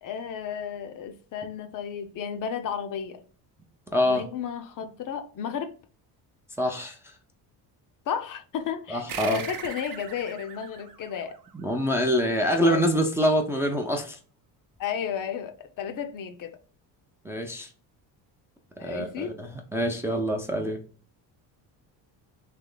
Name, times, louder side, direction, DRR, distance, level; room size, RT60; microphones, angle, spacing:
voice 1, 0.0-3.2 4.0-5.7 8.1-11.4 12.6-12.8 14.8-16.6 18.8-19.4, left 8 dB, 50° left, 0.6 m, -33 dB
voice 2, 3.9-4.2 6.6-7.0 8.9-9.4 11.6-14.2 17.2-17.7 18.8-20.8, equal, 5° right, 0.4 m, -25 dB
sound 1, 9.1-12.1, right 6 dB, 55° right, 0.8 m, -40 dB
3.3 x 3.0 x 3.7 m
cardioid pair, 130°, 42 cm